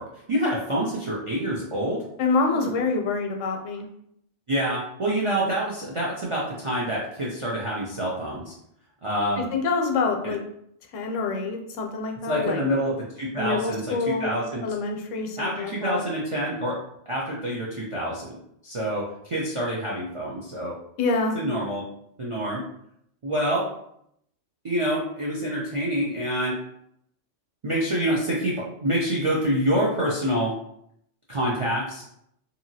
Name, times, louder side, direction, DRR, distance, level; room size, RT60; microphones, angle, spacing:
voice 1, 0.0-2.0 2.5-2.7 4.5-8.5 9.0-9.4 10.2-10.3 12.3-14.6 15.4-16.8 17.1-18.3 18.6-20.8 21.3-21.8 22.2-22.7 23.2-23.7 24.6-26.6 27.6-30.5 31.3-32.0, equal, 50° right, -5 dB, 0.3 m, -27 dB
voice 2, 2.2-3.9 9.4-10.4 10.9-12.6 13.4-14.4 14.6-16.0 21.0-21.4, left 4 dB, 85° left, 3 dB, 0.9 m, -26 dB
2.8 x 2.5 x 2.7 m, 0.72 s
omnidirectional pair, 1.2 m